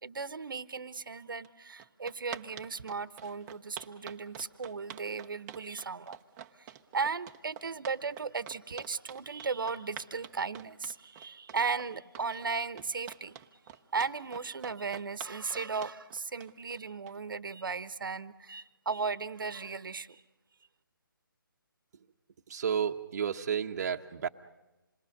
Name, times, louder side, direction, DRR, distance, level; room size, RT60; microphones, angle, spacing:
voice 1, 0.0-6.2 6.6-6.7 6.9-13.4 13.9-20.2, right 5 dB, 70° right, 15 dB, 1.0 m, -36 dB
sound 1, 1.4-1.5 1.8-17.4, right 10 dB, 15° right, 0.8 m, -47 dB
voice 2, 22.5-24.3, right 7 dB, 45° right, 3 dB, 0.9 m, -31 dB
27.5 x 21.5 x 6.5 m, 1.0 s
figure-of-eight pair, 160°, 12 cm